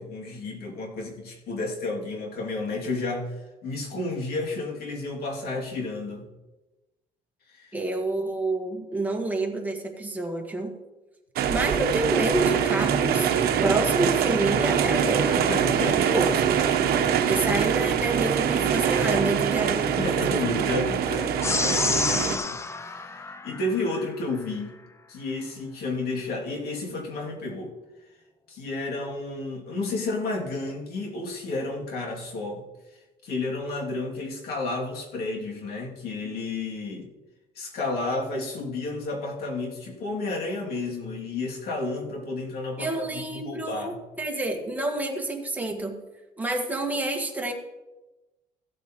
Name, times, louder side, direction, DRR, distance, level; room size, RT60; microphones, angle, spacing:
voice 1, 0.0-3.3 3.6-6.2 7.5-7.8 15.3-16.2 16.5-16.6 17.1-17.4 20.0-24.7 25.1-27.8 28.5-32.6 33.2-37.1 37.6-44.0, left 2 dB, 65° left, -1 dB, 2.6 m, -32 dB
voice 2, 7.7-10.7 11.5-13.3 13.6-15.4 16.1-16.5 17.3-20.2 42.8-43.9 44.2-46.0 46.4-47.5, right 2 dB, 10° right, 1 dB, 1.6 m, -28 dB
sound 1, 11.4-22.4, right 8 dB, 65° right, 0.9 m, -24 dB
sound 2, 21.4-24.1, left 4 dB, 15° left, 0.4 m, -28 dB
15.5 x 8.1 x 3.0 m, 1.1 s
cardioid pair, 110°, 17 cm